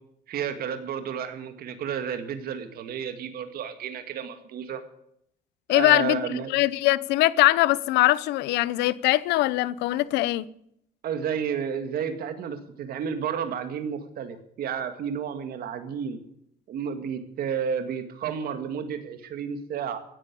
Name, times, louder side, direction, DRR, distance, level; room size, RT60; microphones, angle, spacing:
voice 1, 0.3-4.8 5.7-6.5 11.0-16.2 16.7-20.0, right 7 dB, 65° right, 2.0 m, -31 dB
voice 2, 5.7-6.2 6.5-10.5, left 17 dB, 90° left, 0.8 m, -22 dB
16.0 x 11.0 x 8.5 m
cardioid pair, 110°, 17 cm